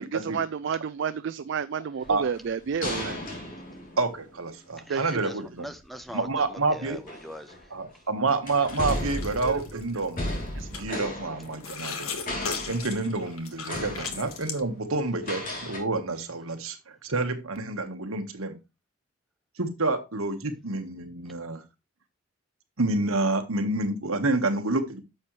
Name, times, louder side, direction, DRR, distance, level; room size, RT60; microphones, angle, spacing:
voice 1, 0.0-3.2 4.9-5.2 9.4-9.8 10.6-10.9, right 6 dB, 55° right, 0.4 m, -31 dB
sound 1, 2.0-4.5 6.0-6.2 6.9-7.9 8.5-12.0 12.2-13.3 13.6-14.6 15.2-15.8, left 1 dB, 40° left, 3.2 m, -35 dB
voice 2, 4.0-5.7 6.1-7.0 7.7-10.3 10.7-12.1 12.7-18.6 19.6-21.6 22.8-25.0, right 3 dB, 75° right, 1.4 m, -28 dB
voice 3, 4.8-7.7, equal, ahead, 0.5 m, -42 dB
sound 2, 8.5-10.3 10.7-10.9 11.4-14.6, left 5 dB, 85° left, 1.6 m, -37 dB
9.6 x 6.7 x 3.2 m
head